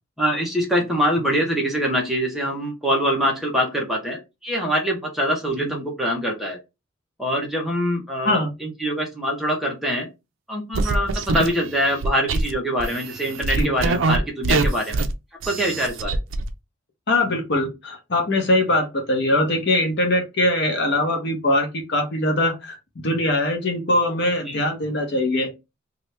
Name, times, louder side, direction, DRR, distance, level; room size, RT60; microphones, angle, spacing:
voice 1, 0.2-6.6 7.2-10.1 10.5-15.0 15.5-16.2 24.5-24.6, equal, ahead, -1 dB, 0.9 m, -24 dB
sound 1, 10.7-12.5 12.8-14.2 14.4-15.1 15.4-16.5, right 3 dB, 70° right, 0.5 m, -24 dB
voice 2, 17.1-22.8 23.0-25.5, left 1 dB, 55° left, 4 dB, 0.9 m, -22 dB
2.9 x 2.6 x 3.2 m, 0.25 s
head